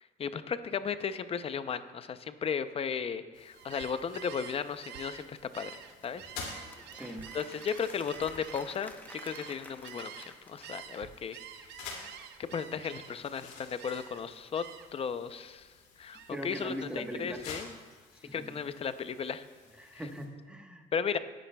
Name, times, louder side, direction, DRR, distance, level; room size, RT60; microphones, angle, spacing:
voice 1, 0.2-5.7 6.0-6.3 7.3-11.4 12.4-14.6 14.9-15.7 16.0-17.7 18.3-19.4 19.9-20.0 20.9-21.2, left 6 dB, 35° left, 12 dB, 0.6 m, -35 dB
sound 1, 3.3-20.3, left 4 dB, 85° left, 2.4 m, -51 dB
Gull seagull, 3.5-10.3 10.6-13.3 13.8-14.2 14.5-15.0 15.4-16.9, right 9 dB, 80° right, 0.7 m, -48 dB
Applause / Crowd, 5.8-11.2, left 1 dB, 10° left, 0.9 m, -52 dB
voice 2, 6.9-7.3 16.3-17.4 18.1-18.6 19.8-20.9, equal, 5° right, 3 dB, 1.2 m, -41 dB
18.5 x 10.0 x 2.3 m, 1.5 s
cardioid pair, 110°, 17 cm